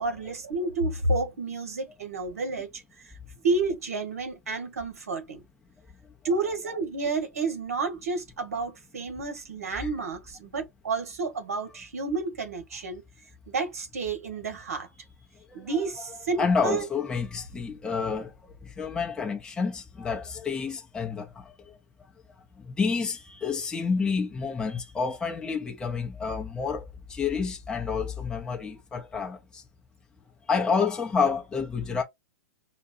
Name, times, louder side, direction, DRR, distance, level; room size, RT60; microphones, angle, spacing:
voice 1, 0.0-3.1 3.4-5.4 6.2-13.0 13.5-14.9 15.5-16.8, right 3 dB, 85° right, 1.6 m, -30 dB
voice 2, 15.4-15.8 16.4-18.3 18.6-21.8 22.6-29.6 30.5-32.0, left 5 dB, 10° left, 0.7 m, -29 dB
4.8 x 2.3 x 2.7 m
hypercardioid pair, 130°, 8 cm